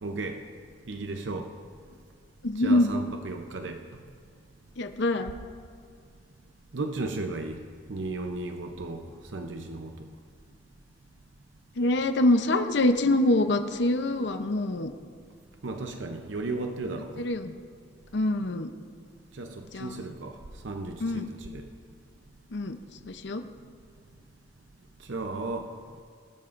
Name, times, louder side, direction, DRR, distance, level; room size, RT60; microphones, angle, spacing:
voice 1, 0.0-0.4 0.9-1.5 2.6-3.8 6.7-7.6 7.9-9.1 9.3-9.9 15.6-17.2 19.3-20.4 20.6-21.7 25.1-25.7, right 2 dB, 80° right, 5 dB, 0.7 m, -34 dB
voice 2, 2.4-2.9 4.8-5.3 11.8-14.9 17.2-17.5 18.1-18.7 19.7-20.0 21.0-21.3 22.5-22.8 23.1-23.4, left 1 dB, 70° left, 7 dB, 0.7 m, -25 dB
20.0 x 12.5 x 2.6 m, 2.2 s
head